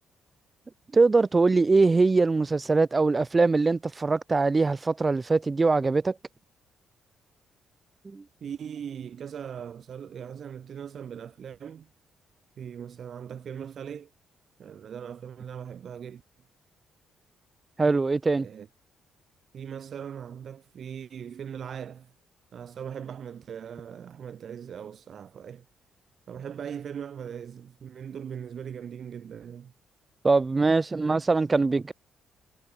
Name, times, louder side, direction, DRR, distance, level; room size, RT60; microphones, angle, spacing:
voice 1, 0.9-6.1 8.1-8.2 17.8-18.5 30.2-31.9, right 3 dB, 25° right, 0.3 m, -22 dB
voice 2, 8.4-11.9 12.6-14.1 14.6-16.2 18.4-18.7 19.5-22.1 22.5-25.6 26.3-29.7, right 8 dB, 55° right, 0.8 m, -39 dB
cardioid pair, 90°, 0 cm